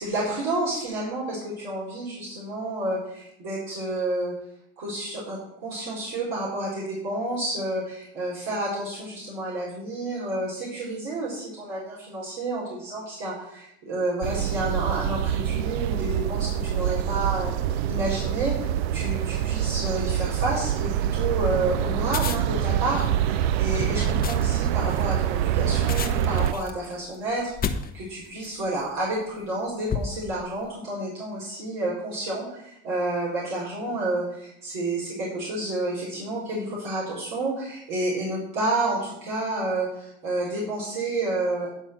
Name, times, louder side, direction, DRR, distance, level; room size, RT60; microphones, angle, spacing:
voice 1, 0.0-4.3 4.8-41.8, right 2 dB, 70° right, -6 dB, 3.9 m, -30 dB
sound 1, 14.2-26.5, right 10 dB, 85° right, 0.5 m, -25 dB
sound 2, 22.0-28.7 29.3-29.5 29.9-30.6, left 7 dB, 30° left, 1.0 m, -33 dB
10.5 x 4.1 x 7.4 m, 0.78 s
supercardioid pair, 100°, 30 cm